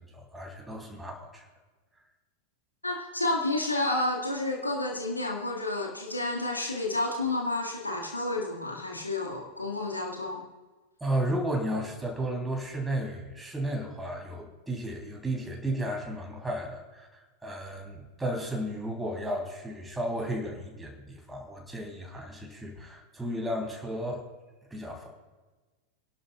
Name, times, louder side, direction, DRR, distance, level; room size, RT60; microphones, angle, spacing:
voice 1, 0.1-1.4 11.0-17.1 17.4-24.3 24.7-25.1, right 1 dB, 10° right, 0 dB, 3.2 m, -33 dB
voice 2, 2.8-10.4, left 2 dB, 85° left, -1 dB, 1.9 m, -30 dB
28.0 x 11.0 x 2.4 m, 1.3 s
figure-of-eight pair, 90°, 0 cm